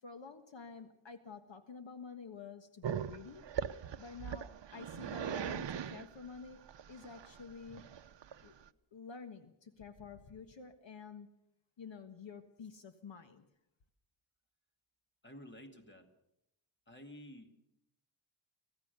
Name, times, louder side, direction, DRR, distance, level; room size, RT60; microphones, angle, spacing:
voice 1, 0.0-3.4 4.0-6.6 6.9-7.8 8.4-8.5 8.9-11.3 11.8-13.5, left 5 dB, 65° left, 1.6 m, -50 dB
Growling, 2.8-8.7, right 8 dB, 60° right, 0.8 m, -40 dB
voice 2, 15.2-16.1 16.9-17.5, left 1 dB, 20° left, 2.2 m, -52 dB
25.5 x 16.5 x 6.8 m
wide cardioid pair, 175°, 49 cm